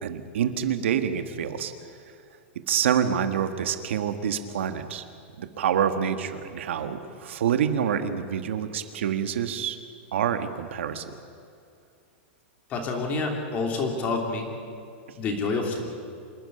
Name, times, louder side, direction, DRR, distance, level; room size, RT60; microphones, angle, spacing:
voice 1, 0.0-1.7 2.7-5.0 5.4-9.8 10.1-11.0, right 8 dB, 85° right, 8 dB, 1.7 m, -27 dB
voice 2, 12.7-14.5 15.1-15.9, left 3 dB, 25° left, 3 dB, 3.0 m, -28 dB
27.0 x 12.5 x 10.0 m, 2.4 s
supercardioid pair, 170°, 6 cm